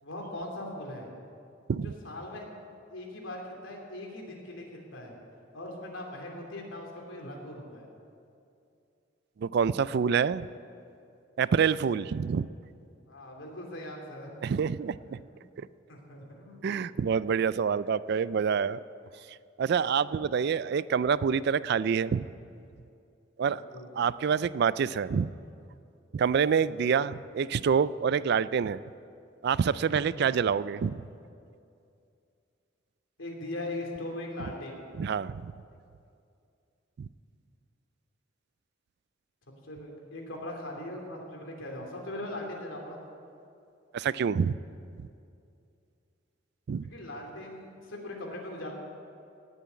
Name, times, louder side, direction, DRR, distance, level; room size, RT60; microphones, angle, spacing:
voice 1, 0.0-1.1 1.8-2.5 2.9-5.1 5.5-7.9 13.1-14.3 15.1-15.4 15.9-17.0 23.7-23.9 26.8-26.9 30.1-30.2 33.2-34.8 39.6-43.0 46.9-48.7, left 1 dB, 90° left, 0 dB, 3.1 m, -40 dB
voice 2, 9.4-10.5 11.4-12.5 14.4-15.2 15.6-15.7 16.6-18.8 19.6-22.3 23.4-23.6 24.0-25.3 26.1-28.8 29.4-31.0 35.0-35.5 37.0-37.1 43.9-44.6 45.0-45.1 46.7-46.9, right 6 dB, 55° right, 18 dB, 0.3 m, -27 dB
17.5 x 7.0 x 9.6 m, 2.5 s
head